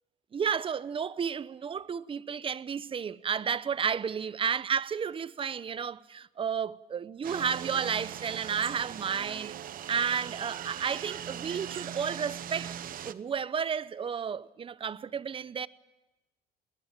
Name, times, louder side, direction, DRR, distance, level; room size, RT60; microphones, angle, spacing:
voice 1, 0.3-9.6 9.9-12.8 13.0-15.7, right 7 dB, 30° right, 0.8 m, -32 dB
sound 1, 7.2-13.1, right 10 dB, 55° right, 1.0 m, -40 dB
21.5 x 19.0 x 9.0 m
cardioid pair, 110°, 17 cm